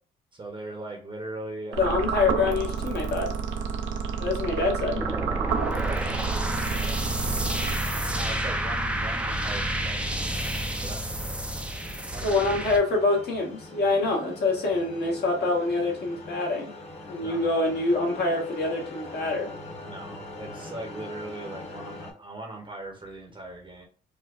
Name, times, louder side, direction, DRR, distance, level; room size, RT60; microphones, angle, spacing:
voice 1, 0.3-1.8 5.5-7.0 8.1-11.5 12.1-12.6 17.2-17.5 19.8-23.9, right 2 dB, 25° right, 1 dB, 0.8 m, -40 dB
sound 1, 1.7-8.2, right 6 dB, 70° right, 0.5 m, -30 dB
voice 2, 1.8-3.3 4.2-5.0 12.2-16.7 17.1-19.5, left 3 dB, 55° left, 0 dB, 1.1 m, -25 dB
sound 2, 5.0-12.8, right 1 dB, 5° right, 0.4 m, -30 dB
sound 3, 8.7-22.1, left 2 dB, 30° left, 1.1 m, -43 dB
4.5 x 2.1 x 2.4 m, 0.39 s
cardioid pair, 90°, 20 cm